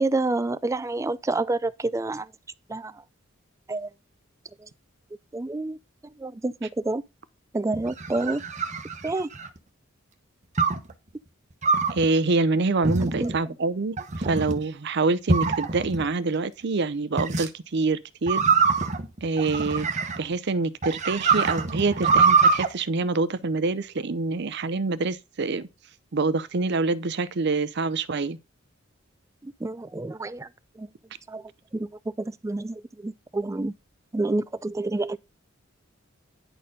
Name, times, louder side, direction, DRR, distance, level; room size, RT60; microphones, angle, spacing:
voice 1, 0.0-2.3 2.7-2.9 3.7-3.9 4.6-4.7 5.3-5.8 6.2-7.0 7.5-8.4 9.0-9.3 12.9-13.3 29.4-30.5 30.8-30.9 31.3-31.4 31.7-31.9 32.2-33.7 34.1-35.2, right 2 dB, 15° right, 0.4 m, -28 dB
sound 1, 7.7-9.6 10.6-10.9 11.6-12.1 12.8-13.4 14.0-14.6 15.3-16.1 17.2-17.5 18.3-20.3 20.8-22.7, right 4 dB, 35° right, 0.9 m, -23 dB
voice 2, 11.9-18.4 19.2-19.9 20.2-25.7 26.1-28.4, right 3 dB, 55° right, 0.6 m, -26 dB
10.0 x 4.3 x 5.2 m
head